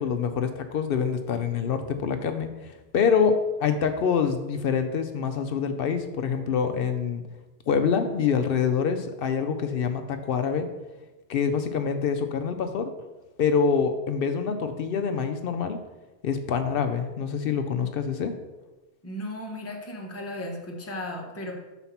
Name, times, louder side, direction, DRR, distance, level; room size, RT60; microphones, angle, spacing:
voice 1, 0.0-7.2 7.7-10.7 11.3-12.9 13.4-15.8 16.2-18.3, left 6 dB, 60° left, 7 dB, 0.7 m, -26 dB
voice 2, 19.0-21.6, left 1 dB, 15° left, 0 dB, 0.9 m, -35 dB
5.6 x 4.1 x 5.8 m, 1.1 s
omnidirectional pair, 1.2 m